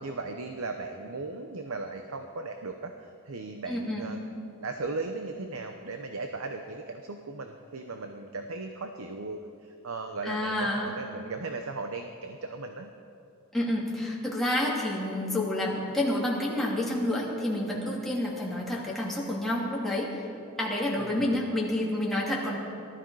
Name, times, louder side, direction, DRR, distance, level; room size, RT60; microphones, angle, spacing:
voice 1, 0.0-4.2 4.6-12.9 20.9-21.4, right 3 dB, 75° right, 5 dB, 0.8 m, -37 dB
voice 2, 3.7-4.1 10.2-10.9 13.5-20.3 20.6-22.6, left 1 dB, ahead, -5 dB, 2.6 m, -29 dB
18.5 x 13.0 x 4.8 m, 2.5 s
head